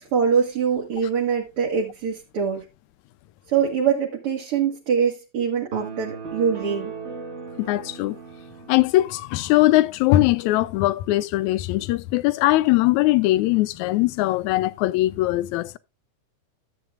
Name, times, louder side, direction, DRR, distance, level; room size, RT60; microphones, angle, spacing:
voice 1, 0.0-2.6 3.5-6.9, right 7 dB, 55° right, 2.3 m, -23 dB
sound 1, 5.7-9.3, right 5 dB, 35° right, 1.1 m, -37 dB
voice 2, 7.6-8.2 8.7-15.8, left 17 dB, 80° left, 1.9 m, -20 dB
13.5 x 8.2 x 2.4 m
omnidirectional pair, 3.4 m